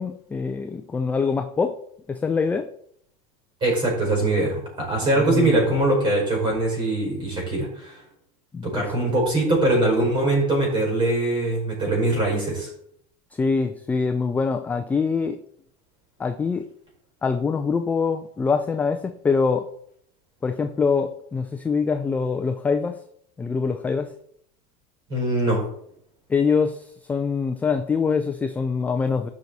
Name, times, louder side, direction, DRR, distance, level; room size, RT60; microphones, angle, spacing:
voice 1, 0.0-1.8 2.1-2.7 5.2-5.6 8.5-8.8 13.4-15.4 16.2-16.7 17.2-19.7 20.4-23.0 23.4-24.1 26.3-29.3, left 5 dB, 10° left, 7 dB, 0.3 m, -24 dB
voice 2, 3.6-8.0 8.6-12.7 25.1-25.7, right 2 dB, 25° right, 0 dB, 5.3 m, -22 dB
15.5 x 5.9 x 4.1 m, 0.69 s
supercardioid pair, 160°, 20 cm